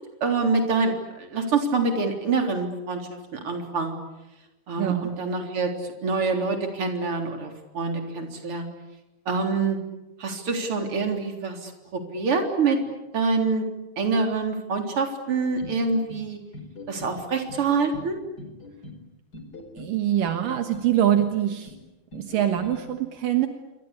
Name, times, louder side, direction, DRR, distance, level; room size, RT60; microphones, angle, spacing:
voice 1, 0.2-3.0 3.3-4.0 4.7-5.7 6.0-8.7 9.3-9.8 10.2-12.8 13.1-13.7 14.0-16.4 16.9-18.2, right 4 dB, 40° right, 4 dB, 4.4 m, -26 dB
voice 2, 4.8-5.2 19.7-21.7 22.1-23.5, right 11 dB, 75° right, 6 dB, 3.0 m, -24 dB
sound 1, 15.6-16.2 16.5-17.2 17.5-18.1 18.4-19.0 19.3-19.9 20.2-20.9 21.2-21.8 22.1-22.8, left 1 dB, 25° left, 5.0 m, -41 dB
28.0 x 25.0 x 8.5 m, 1.0 s
omnidirectional pair, 4.0 m